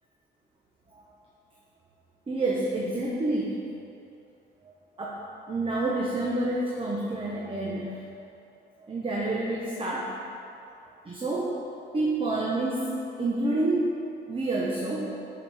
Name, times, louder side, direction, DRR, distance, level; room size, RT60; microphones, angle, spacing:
voice 1, 2.3-3.6 5.0-7.9 8.8-10.1 11.0-11.5 11.9-12.9 13.2-15.1, right 2 dB, 25° right, -4 dB, 0.9 m, -28 dB
6.9 x 5.8 x 3.5 m, 2.6 s
cardioid pair, 90°, 20 cm